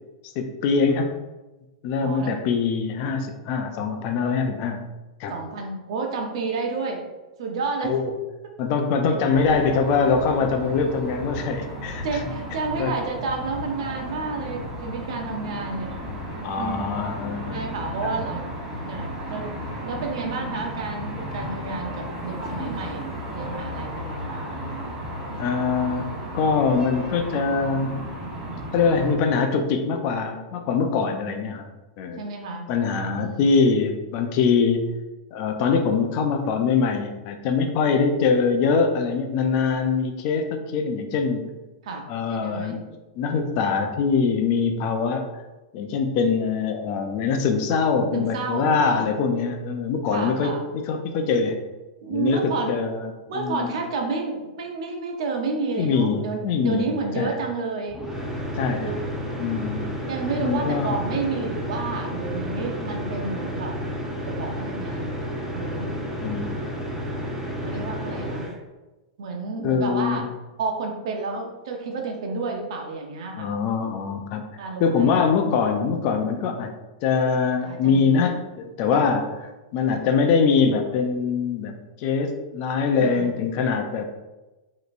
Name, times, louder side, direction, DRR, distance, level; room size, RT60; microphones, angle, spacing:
voice 1, 0.3-1.1 1.8-4.9 5.2-5.3 7.8-8.1 8.6-12.1 12.8-12.9 16.4-17.6 18.0-18.1 25.4-28.0 28.7-31.7 32.0-32.2 32.7-34.9 35.3-41.5 42.1-42.9 43.2-45.3 45.7-51.6 52.1-53.7 55.8-56.9 57.2-57.3 58.6-59.0 59.4-59.9 60.4-60.9 66.2-66.5 69.6-70.2 73.4-74.4 74.8-76.7 77.0-79.2 79.7-81.7 82.0-84.2, left 5 dB, 45° left, 5 dB, 0.6 m, -23 dB
voice 2, 1.9-2.4 5.3-7.0 7.4-8.0 12.0-16.0 16.6-16.9 17.5-19.6 19.8-24.9 32.2-32.7 33.1-33.5 41.8-42.0 42.3-42.8 48.1-49.3 50.1-50.6 52.0-52.8 53.3-58.0 58.8-59.0 60.1-63.7 64.2-65.1 65.5-66.0 67.6-68.5 69.2-70.2 70.6-73.5 74.6-75.2 77.6-78.2 78.9-79.1 83.0-83.4, right 4 dB, 65° right, 2 dB, 0.9 m, -30 dB
sound 1, 9.3-29.1, equal, 20° right, 1.3 m, -34 dB
sound 2, 57.9-68.5, equal, ahead, 1.2 m, -31 dB
5.0 x 3.1 x 2.6 m, 1.1 s
hypercardioid pair, 135°, 3 cm